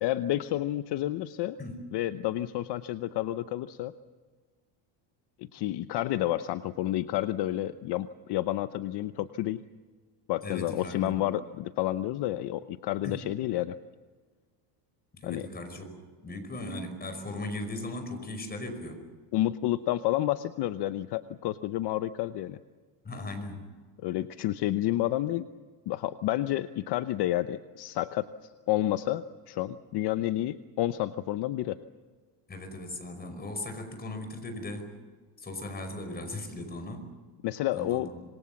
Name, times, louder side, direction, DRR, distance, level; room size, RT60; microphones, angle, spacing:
voice 1, 0.0-1.6 1.9-3.9 5.4-9.6 10.3-13.8 15.2-15.5 19.3-22.6 24.0-25.5 25.9-28.3 28.7-31.8 37.4-38.1, left 14 dB, 60° left, 11 dB, 0.9 m, -30 dB
voice 2, 10.4-11.3 13.0-13.2 15.1-15.9 16.2-19.0 23.0-23.7 32.5-34.9 35.4-37.1 37.7-38.1, left 2 dB, 20° left, 7 dB, 5.2 m, -38 dB
26.5 x 22.5 x 7.2 m, 1.4 s
cardioid pair, 140°, 47 cm